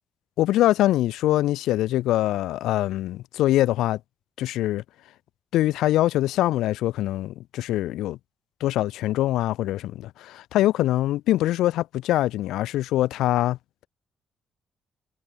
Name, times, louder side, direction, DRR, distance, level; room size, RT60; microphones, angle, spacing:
voice 1, 0.4-4.0 4.4-4.8 5.5-8.2 8.6-13.6, left 14 dB, 85° left, 0.6 m, -23 dB
cardioid pair, 90°, 0 cm